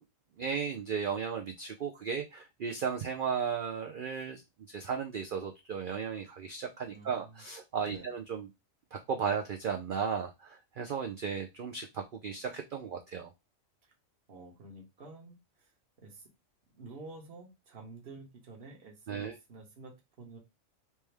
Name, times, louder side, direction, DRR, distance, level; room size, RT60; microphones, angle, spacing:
voice 1, 0.4-4.4 4.7-8.5 8.9-13.3 19.1-19.3, right 6 dB, 65° right, 3 dB, 0.5 m, -35 dB
voice 2, 6.9-7.4 7.8-8.1 14.3-15.7 16.0-16.3 16.7-20.4, right 3 dB, 50° right, 0 dB, 1.3 m, -50 dB
3.4 x 2.9 x 3.3 m, 0.23 s
omnidirectional pair, 1.4 m